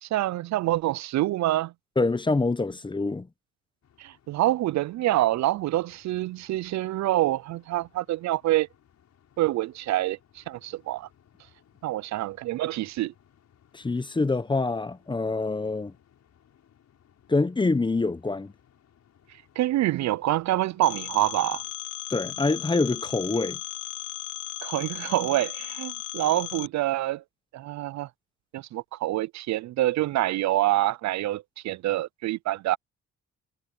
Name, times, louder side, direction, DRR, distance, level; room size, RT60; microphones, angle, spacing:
voice 1, 0.0-1.7 4.0-8.7 9.4-11.1 11.8-13.1 19.6-21.6 24.6-27.2 27.5-28.1 28.5-32.8, right 15 dB, 65° right, 0.5 m, -26 dB
voice 2, 2.0-3.3 13.7-15.9 17.3-18.5 22.1-23.6, left 3 dB, 15° left, 0.8 m, -25 dB
sound 1, 3.8-21.7, left 9 dB, 65° left, 6.6 m, -62 dB
Telephone, 20.8-26.7, left 17 dB, 85° left, 0.5 m, -36 dB
cardioid pair, 90°, 30 cm